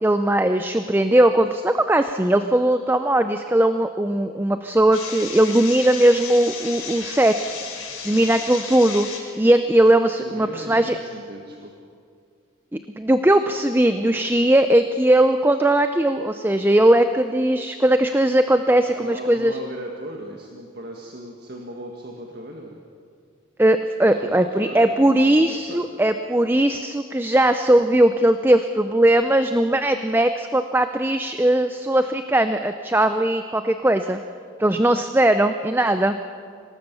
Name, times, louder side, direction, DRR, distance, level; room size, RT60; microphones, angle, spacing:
voice 1, 0.0-7.5 8.0-9.1 9.4-11.0 13.0-19.6 23.6-34.2 34.6-36.1, right 1 dB, 10° right, 9 dB, 0.5 m, -19 dB
sound 1, 4.9-9.2, left 5 dB, 85° left, 5.0 m, -34 dB
voice 2, 10.2-11.7 18.9-22.8 24.0-25.8, right 1 dB, 50° right, 1 dB, 1.7 m, -37 dB
25.5 x 18.5 x 6.9 m, 2.3 s
head